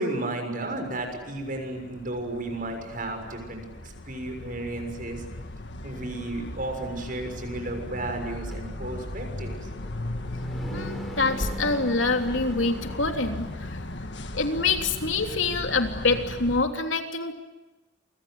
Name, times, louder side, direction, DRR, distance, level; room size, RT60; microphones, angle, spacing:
voice 1, 0.0-5.2 5.8-9.7, right 2 dB, 45° right, 5 dB, 6.6 m, -33 dB
sound 1, 0.7-16.6, left 1 dB, 65° left, 1.9 m, -37 dB
electric lawn-mower startup, 8.5-14.1, equal, ahead, 4.3 m, -41 dB
voice 2, 10.7-13.8 14.3-17.3, left 3 dB, 85° left, 4 dB, 3.3 m, -26 dB
29.0 x 25.0 x 8.0 m, 1.1 s
head